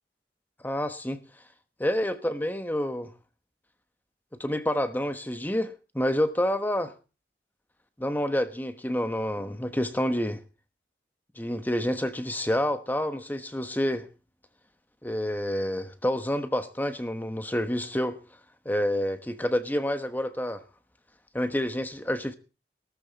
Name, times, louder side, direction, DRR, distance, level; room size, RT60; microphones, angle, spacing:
voice 1, 0.6-1.2 1.8-3.1 4.4-6.9 8.0-10.4 11.4-14.1 15.0-18.2 18.6-20.6 21.3-22.3, equal, 10° left, 1.2 m, -28 dB
18.0 x 13.5 x 4.1 m
head